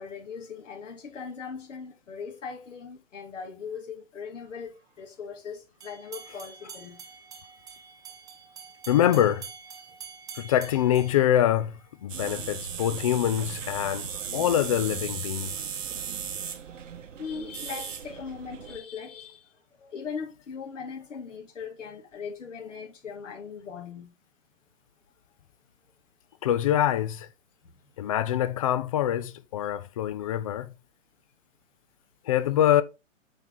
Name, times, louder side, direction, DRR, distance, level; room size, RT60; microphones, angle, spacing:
voice 1, 0.0-7.0 17.2-24.1, left 6 dB, 70° left, 2.2 m, -39 dB
sound 1, 5.8-12.0, right 6 dB, 10° right, 0.6 m, -46 dB
voice 2, 8.9-9.5 10.4-15.5 26.4-27.3 28.0-30.7 32.3-32.8, left 11 dB, 30° left, 0.4 m, -25 dB
sound 2, 12.1-18.8, right 7 dB, 70° right, 1.1 m, -36 dB
7.8 x 4.2 x 3.9 m
hypercardioid pair, 130°, 39 cm